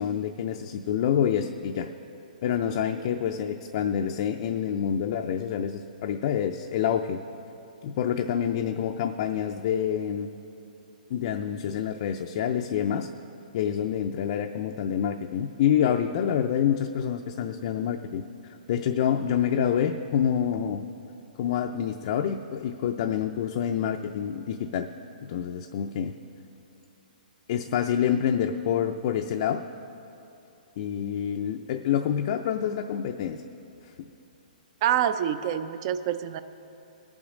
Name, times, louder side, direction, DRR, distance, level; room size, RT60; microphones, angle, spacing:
voice 1, 0.0-1.9 2.4-7.2 7.8-10.3 11.1-13.1 13.5-20.8 21.4-24.9 25.2-26.1 27.5-29.6 30.8-33.4, left 9 dB, 40° left, 5 dB, 0.5 m, -27 dB
voice 2, 34.8-36.4, right 10 dB, 35° right, 12 dB, 0.5 m, -26 dB
20.5 x 7.2 x 5.0 m, 2.8 s
hypercardioid pair, 155°, 5 cm